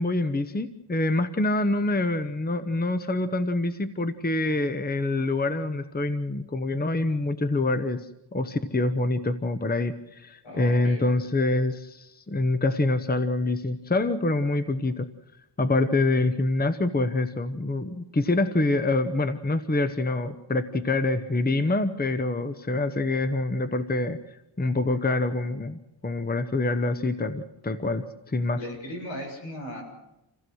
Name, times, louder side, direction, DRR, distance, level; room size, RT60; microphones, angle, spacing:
voice 1, 0.0-8.1 8.3-15.1 15.6-24.2 24.6-28.6, left 2 dB, 20° left, 10 dB, 1.0 m, -26 dB
voice 2, 10.4-11.3 28.6-29.8, left 1 dB, 75° left, 2 dB, 7.3 m, -37 dB
28.0 x 15.5 x 6.4 m, 0.90 s
wide cardioid pair, 85°, 47 cm